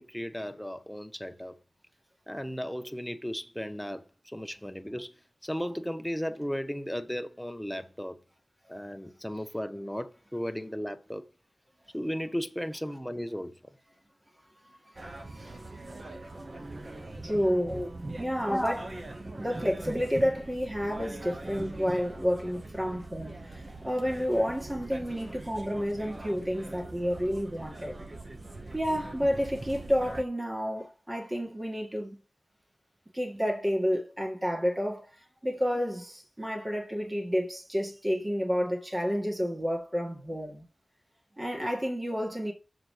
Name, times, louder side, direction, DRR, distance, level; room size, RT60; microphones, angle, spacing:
voice 1, 0.0-1.6 2.3-5.1 5.4-8.2 8.7-11.2 11.9-13.5 17.7-17.9 18.5-18.8, equal, 5° left, 0.8 m, -35 dB
sound 1, 15.0-30.2, right 2 dB, 40° right, 0.9 m, -42 dB
voice 2, 15.2-15.8 17.2-17.8 18.2-18.9 19.4-28.0 28.7-32.2 33.1-35.1 35.4-40.7 41.4-42.5, equal, 20° right, 2.1 m, -30 dB
7.2 x 3.8 x 6.4 m
wide cardioid pair, 85°, 0 cm